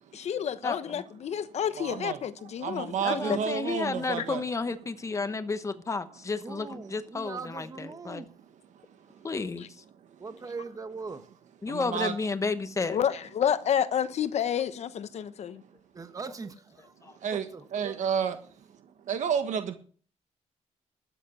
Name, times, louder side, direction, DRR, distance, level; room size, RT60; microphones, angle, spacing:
voice 1, 0.1-3.4 4.2-4.3 12.9-15.6, left 9 dB, 60° left, 1.0 m, -29 dB
voice 2, 0.6-1.0 3.0-8.2 9.2-9.7 11.6-13.0 17.0-17.2, left 4 dB, 25° left, 1.1 m, -32 dB
voice 3, 1.8-2.2 2.6-4.4 11.7-12.1 17.2-17.4 17.7-18.4 19.1-19.8, right 7 dB, 80° right, 1.4 m, -30 dB
voice 4, 3.0-3.4 6.4-8.3 10.2-11.3 15.9-16.9 17.5-18.0, right 4 dB, 30° right, 1.1 m, -41 dB
12.5 x 9.1 x 5.5 m
wide cardioid pair, 145°, 12 cm